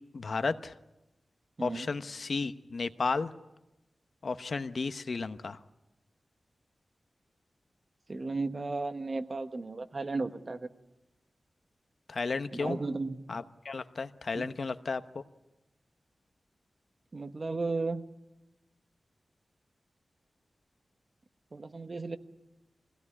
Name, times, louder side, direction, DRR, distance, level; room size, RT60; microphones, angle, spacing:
voice 1, 0.1-0.7 1.6-3.3 4.2-5.6 12.1-12.8 13.3-15.2, left 4 dB, 60° left, 11 dB, 0.9 m, -33 dB
voice 2, 1.6-1.9 8.1-10.7 12.5-13.2 14.3-14.5 17.1-18.1 21.5-22.2, right 3 dB, 40° right, 9 dB, 1.2 m, -34 dB
23.0 x 17.0 x 9.8 m, 0.98 s
wide cardioid pair, 110°, 0 cm